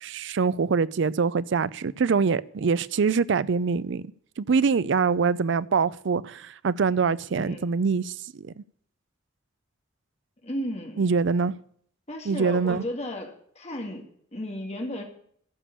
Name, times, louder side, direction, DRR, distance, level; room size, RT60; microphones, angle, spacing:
voice 1, 0.0-4.1 4.4-8.6 11.0-11.5 12.3-12.8, right 5 dB, 65° right, 0.4 m, -24 dB
voice 2, 7.3-7.7 10.4-11.1 12.1-15.0, left 1 dB, 35° left, 2.1 m, -34 dB
12.5 x 7.0 x 8.5 m
head